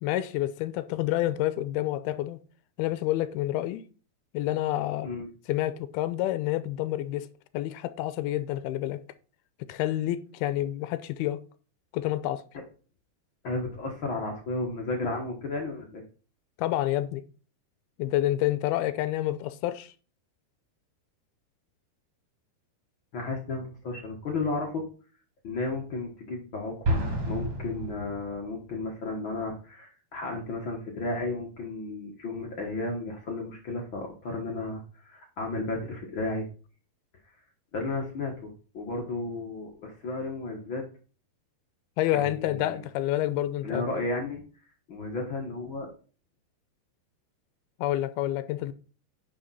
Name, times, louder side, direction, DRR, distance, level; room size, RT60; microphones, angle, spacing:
voice 1, 0.0-2.4 2.8-3.8 4.3-5.1 5.5-7.3 7.5-9.0 9.7-11.4 11.9-12.4 16.6-17.2 18.0-19.9 42.0-43.9 47.8-48.7, left 14 dB, 80° left, 2.4 m, -28 dB
voice 2, 13.4-16.0 23.1-24.9 25.4-36.5 37.7-40.8 42.1-42.8 43.6-44.4 44.9-45.9, left 2 dB, 65° left, 1.2 m, -33 dB
Explosion, 26.8-28.7, right 1 dB, 40° right, 3.2 m, -30 dB
10.0 x 6.0 x 4.2 m
omnidirectional pair, 4.7 m